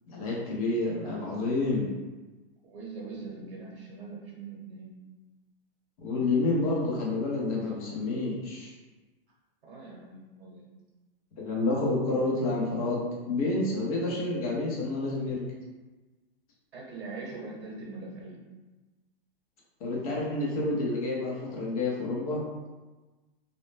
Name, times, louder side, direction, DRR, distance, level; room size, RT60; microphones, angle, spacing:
voice 1, 0.1-1.9 6.0-8.7 11.4-13.0 13.3-15.5 19.8-22.4, left 2 dB, 35° left, -4 dB, 0.7 m, -29 dB
voice 2, 2.6-5.0 9.6-10.7 16.7-18.4, right 3 dB, 65° right, -4 dB, 0.9 m, -42 dB
2.6 x 2.0 x 3.2 m, 1.2 s
hypercardioid pair, 170°, 31 cm